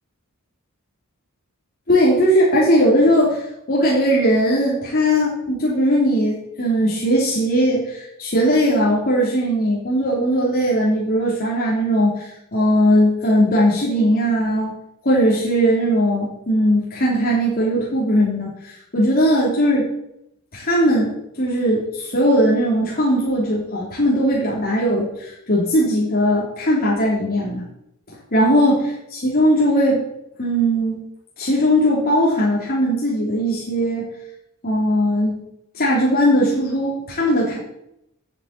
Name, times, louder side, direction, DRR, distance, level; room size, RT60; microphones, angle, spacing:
voice 1, 1.9-3.4 3.7-14.7 15.0-19.9 20.5-21.1 21.4-27.6 28.3-30.0 30.4-31.0 31.4-34.1 34.6-35.4 35.7-37.6, equal, 45° left, -5 dB, 3.4 m, -19 dB
10.5 x 7.5 x 8.3 m, 0.79 s
head